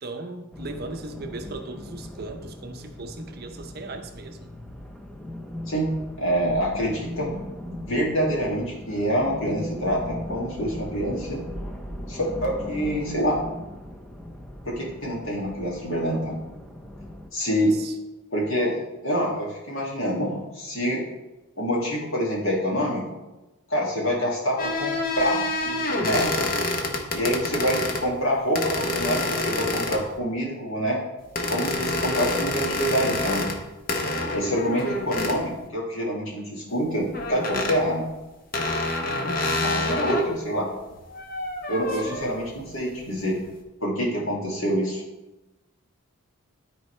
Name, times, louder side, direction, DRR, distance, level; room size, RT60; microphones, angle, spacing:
voice 1, 0.0-4.5 17.7-18.0 39.0-39.7 41.9-42.4, right 2 dB, 45° right, 6 dB, 0.7 m, -38 dB
sound 1, 0.5-17.3, left 1 dB, 5° left, 0.6 m, -38 dB
voice 2, 6.2-7.3 7.9-11.4 12.1-13.4 14.7-16.4 17.3-17.8 18.3-21.0 21.6-23.0 23.7-26.5 27.1-31.0 31.5-33.4 34.1-38.1 39.6-40.7 41.7-43.4 43.8-45.0, equal, 65° left, -3 dB, 2.3 m, -26 dB
sound 2, 24.6-28.1 28.6-30.2 31.4-33.6 33.9-35.4 37.1-37.8 38.5-40.3 40.9-42.4, left 2 dB, 40° left, 0.9 m, -27 dB
13.0 x 4.6 x 3.3 m, 1.0 s
head